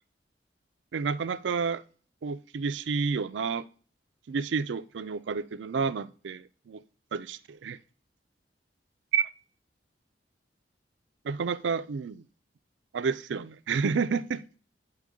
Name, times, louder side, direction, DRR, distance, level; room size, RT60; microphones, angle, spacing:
voice 1, 0.9-1.8 2.2-3.6 4.3-6.8 7.1-7.8 9.1-9.3 11.2-12.2 12.9-14.4, right 5 dB, 85° right, 0.4 m, -30 dB
9.0 x 4.5 x 3.6 m
head